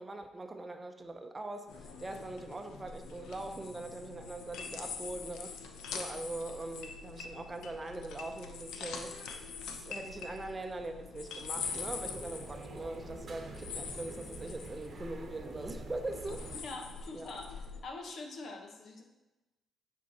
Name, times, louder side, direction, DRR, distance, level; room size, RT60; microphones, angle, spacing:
voice 1, 0.0-5.6 5.9-9.2 9.7-16.6 17.1-17.3, right 2 dB, 25° right, 6 dB, 0.7 m, -42 dB
sound 1, 1.7-17.8, left 5 dB, 85° left, 0.8 m, -44 dB
sound 2, 11.5-16.6, right 4 dB, 45° right, 1.0 m, -47 dB
voice 2, 16.6-17.5 17.8-19.0, left 3 dB, 60° left, 2 dB, 1.3 m, -44 dB
9.1 x 4.6 x 4.2 m, 1.1 s
cardioid pair, 90°, 0 cm